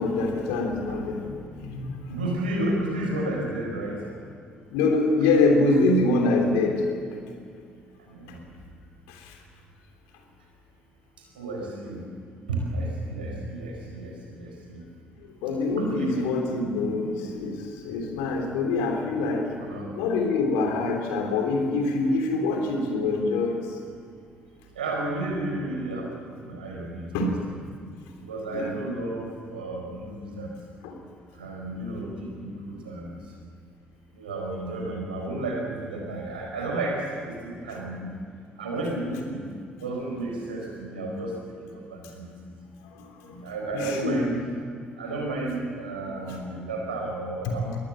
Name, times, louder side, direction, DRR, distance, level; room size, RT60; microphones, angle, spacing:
voice 1, 0.0-2.2 4.7-6.9 9.1-9.4 15.4-19.5 19.9-23.8 27.1-27.3 28.5-28.8 30.8-31.0 42.6-43.4 43.7-44.3 46.3-46.4 47.4-47.5, left 3 dB, 75° left, 3 dB, 3.3 m, -25 dB
voice 2, 2.1-4.0 8.2-8.3 11.4-12.0 12.5-14.8 15.8-16.2 19.5-19.9 24.8-26.1 26.5-27.3 28.3-30.5 31.4-33.1 34.2-38.2 38.6-39.4 39.8-41.4 41.9-42.3 43.4-44.3 45.0-47.8, right 2 dB, 90° right, 0 dB, 4.5 m, -32 dB
22.5 x 18.5 x 7.7 m, 2.2 s
hypercardioid pair, 50°, 5 cm